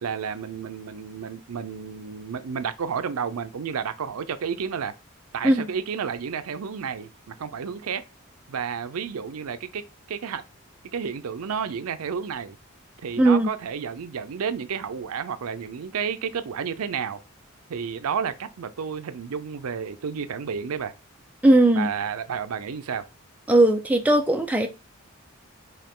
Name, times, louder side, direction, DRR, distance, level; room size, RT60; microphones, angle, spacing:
voice 1, 0.0-4.9 5.3-8.0 8.5-10.4 10.9-12.6 13.0-17.2 17.7-20.9 21.7-23.1, right 6 dB, 80° right, 0.5 m, -31 dB
voice 2, 13.2-13.5 21.4-21.9 23.5-24.7, right 1 dB, 5° right, 0.4 m, -18 dB
4.6 x 3.0 x 3.7 m
head